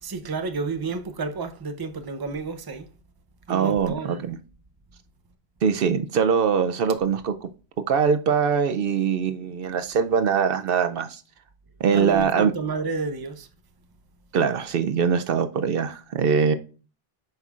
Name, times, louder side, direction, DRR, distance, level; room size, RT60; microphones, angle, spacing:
voice 1, 0.0-2.9 3.5-4.3 11.9-13.5, right 4 dB, 25° right, 0.6 m, -31 dB
voice 2, 3.5-4.4 5.6-7.5 7.9-11.2 11.8-12.5 14.3-16.5, right 6 dB, 70° right, 0.7 m, -22 dB
8.0 x 5.5 x 2.4 m
omnidirectional pair, 1.0 m